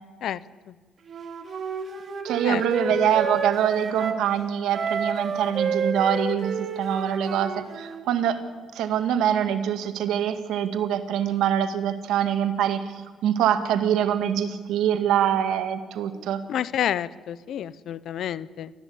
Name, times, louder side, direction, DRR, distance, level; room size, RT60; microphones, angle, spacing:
Wind instrument woodwind instrument, 1.1-4.2 4.7-8.0, right 4 dB, 50° right, 2.7 m, -30 dB
voice 1, 2.2-8.4 8.7-16.4, right 9 dB, 85° right, 9 dB, 1.8 m, -24 dB
voice 2, 16.5-18.7, left 10 dB, 75° left, 18 dB, 0.8 m, -29 dB
29.0 x 13.5 x 8.6 m, 1.4 s
cardioid pair, 90°, 0 cm